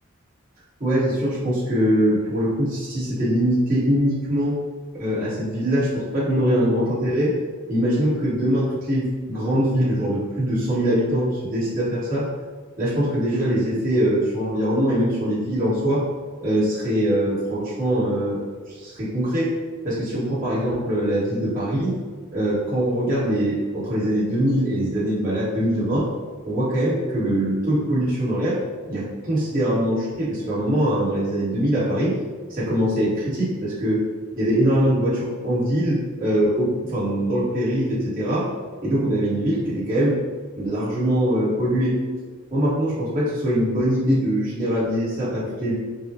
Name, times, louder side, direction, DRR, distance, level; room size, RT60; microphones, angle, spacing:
voice 1, 0.8-4.5 5.0-7.3 7.7-12.3 12.8-16.0 16.4-18.5 18.7-19.5 19.8-21.9 22.3-26.1 26.4-28.6 28.9-32.1 32.5-34.0 34.4-38.5 38.8-40.2 40.6-42.0 42.5-45.7, equal, 40° right, -11 dB, 1.4 m, -22 dB
5.4 x 2.1 x 2.8 m, 1.5 s
head